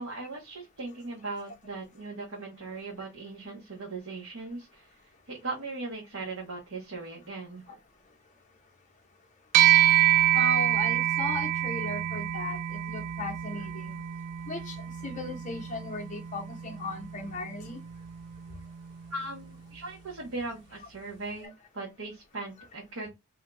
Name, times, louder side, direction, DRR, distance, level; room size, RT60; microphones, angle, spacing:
voice 1, 0.0-7.8 19.1-23.1, right 3 dB, 65° right, 0.9 m, -39 dB
sound 1, 9.5-19.2, right 12 dB, 90° right, 0.3 m, -27 dB
voice 2, 10.3-14.0 14.5-14.8 15.0-17.8 21.4-21.5, left 2 dB, 35° left, 0.7 m, -36 dB
2.6 x 2.2 x 3.9 m
head